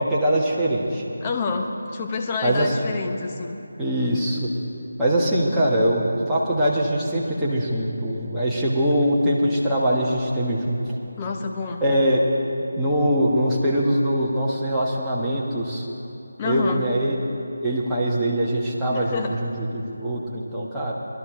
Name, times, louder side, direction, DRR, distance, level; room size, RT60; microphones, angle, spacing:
voice 1, 0.0-1.0 2.4-2.7 3.8-4.5 5.0-10.8 11.8-12.2 12.8-15.9 16.4-17.2 17.6-20.9, equal, 5° right, -9 dB, 1.3 m, -22 dB
voice 2, 1.2-3.6 11.2-11.8 16.4-16.9 18.9-19.4, left 4 dB, 20° left, 2 dB, 0.9 m, -28 dB
20.0 x 12.0 x 3.8 m, 2.9 s
figure-of-eight pair, 160°, 0 cm